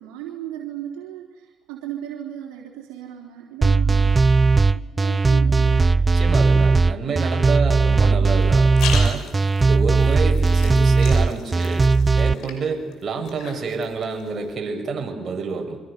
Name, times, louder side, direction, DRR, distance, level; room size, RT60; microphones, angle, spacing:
voice 1, 0.0-6.0, right 11 dB, 85° right, 0 dB, 3.8 m, -36 dB
sound 1, 3.6-12.3, right 4 dB, 30° right, 0.9 m, -17 dB
voice 2, 6.1-9.3 9.6-11.9 12.2-15.8, right 4 dB, 45° right, 3 dB, 7.4 m, -28 dB
sound 2, 8.4-14.5, left 7 dB, 75° left, 6.6 m, -37 dB
28.0 x 25.5 x 7.0 m, 1.3 s
hypercardioid pair, 60°, 0 cm